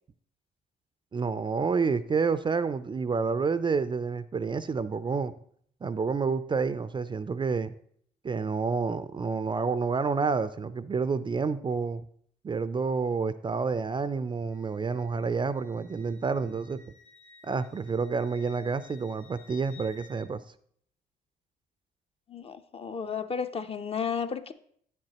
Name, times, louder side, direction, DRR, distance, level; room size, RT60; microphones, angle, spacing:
voice 1, 1.1-5.3 5.8-7.7 8.2-12.0 12.4-16.8 17.4-20.4, right 5 dB, 25° right, 13 dB, 0.4 m, -29 dB
Wind instrument woodwind instrument, 14.5-20.3, left 5 dB, 65° left, 1.9 m, -56 dB
voice 2, 22.3-24.5, left 6 dB, 30° left, 9 dB, 0.6 m, -33 dB
8.5 x 7.7 x 2.9 m, 0.63 s
supercardioid pair, 70°, 18 cm